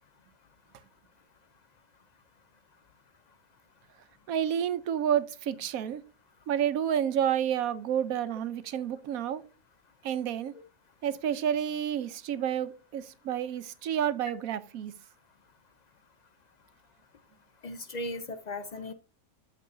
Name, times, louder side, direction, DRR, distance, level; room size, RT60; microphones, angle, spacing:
voice 1, 4.3-6.0 6.5-9.4 10.0-10.5 11.0-14.9, right 9 dB, 70° right, 1.1 m, -30 dB
voice 2, 17.6-18.9, left 1 dB, 80° left, 0.3 m, -37 dB
13.5 x 4.6 x 2.6 m
omnidirectional pair, 1.6 m